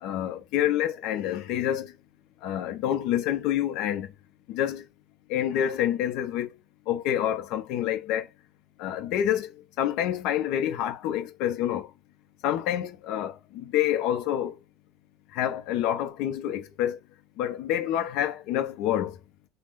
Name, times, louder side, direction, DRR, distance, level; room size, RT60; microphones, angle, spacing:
voice 1, 0.0-1.9 2.4-4.1 4.5-4.8 5.3-6.5 6.9-8.3 8.8-9.5 9.8-11.9 12.4-14.5 15.3-17.0 17.4-19.2, left 11 dB, 65° left, 0.9 m, -27 dB
3.5 x 2.3 x 2.6 m
cardioid pair, 135°, 0 cm